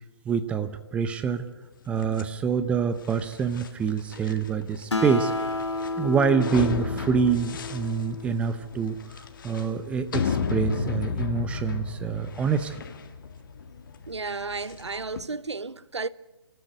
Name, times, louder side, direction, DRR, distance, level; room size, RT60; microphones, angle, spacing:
voice 1, 0.3-1.4 1.9-5.6 6.0-12.8, right 6 dB, 10° right, 0.6 m, -26 dB
sound 1, 2.0-15.2, left 6 dB, 45° left, 1.8 m, -34 dB
Acoustic guitar, 4.9-8.6, left 2 dB, 80° left, 2.0 m, -31 dB
voice 2, 14.1-16.1, right 4 dB, 80° right, 0.8 m, -33 dB
27.0 x 13.5 x 8.0 m
figure-of-eight pair, 140°, 14 cm